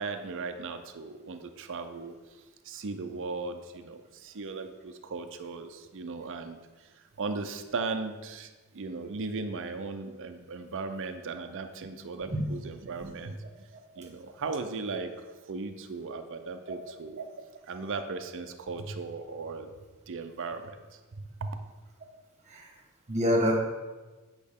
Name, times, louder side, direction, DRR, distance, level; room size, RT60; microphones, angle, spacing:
voice 1, 0.0-2.1 2.6-13.4 14.0-19.7 20.1-20.8 21.2-21.5, right 4 dB, 60° right, 7 dB, 0.5 m, -37 dB
voice 2, 23.1-23.6, equal, 30° right, 0 dB, 1.3 m, -27 dB
8.5 x 5.2 x 3.6 m, 1.3 s
head